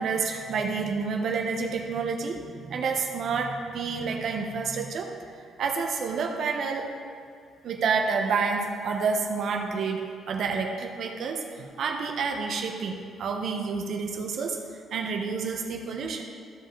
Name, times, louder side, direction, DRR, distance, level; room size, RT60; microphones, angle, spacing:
voice 1, 0.0-5.2 5.6-6.9 7.6-14.6 14.9-16.2, right 5 dB, 65° right, 3 dB, 1.1 m, -29 dB
14.5 x 5.3 x 3.9 m, 2.2 s
cardioid pair, 90°, 0 cm